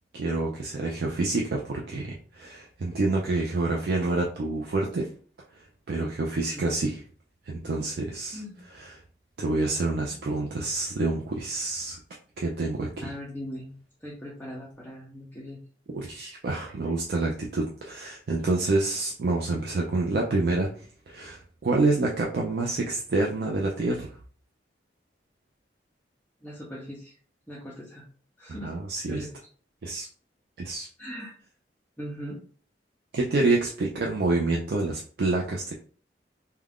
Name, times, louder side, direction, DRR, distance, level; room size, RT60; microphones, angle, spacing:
voice 1, 0.1-5.1 5.9-7.0 7.5-8.4 9.4-12.0 12.4-13.1 15.9-20.7 21.1-24.1 28.6-29.2 29.8-30.1 30.6-30.9 33.1-35.7, right 2 dB, 60° right, -1 dB, 0.4 m, -27 dB
voice 2, 13.0-15.6 26.4-27.2 27.5-28.1 28.4-28.7 29.1-29.3 31.0-31.4 32.0-32.4, equal, 10° left, -7 dB, 0.5 m, -40 dB
2.4 x 2.2 x 3.4 m, 0.43 s
head